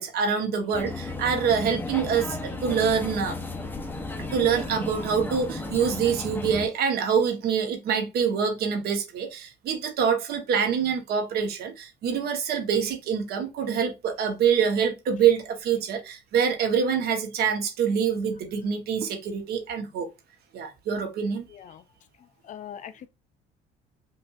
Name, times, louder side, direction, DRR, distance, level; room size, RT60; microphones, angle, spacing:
voice 1, 0.0-3.4 4.2-20.1 20.5-21.4, right 7 dB, 70° right, 1.1 m, -25 dB
sound 1, 0.7-6.7, left 2 dB, 10° left, 0.7 m, -34 dB
voice 2, 22.5-23.1, left 9 dB, 50° left, 0.5 m, -41 dB
5.6 x 2.6 x 2.4 m
cardioid pair, 110°, 17 cm